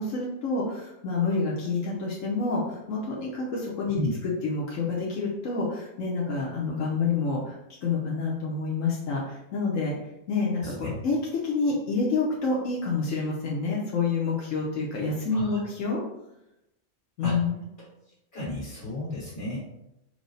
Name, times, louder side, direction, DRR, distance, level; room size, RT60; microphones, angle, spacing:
voice 1, 0.0-4.0 4.4-9.9 10.3-16.0 17.2-17.6, left 4 dB, 80° left, -4 dB, 1.2 m, -28 dB
voice 2, 10.6-10.9 15.3-15.6 17.2-17.4 18.3-19.6, left 1 dB, 65° left, -10 dB, 2.0 m, -33 dB
4.7 x 2.0 x 3.9 m, 0.87 s
omnidirectional pair, 1.3 m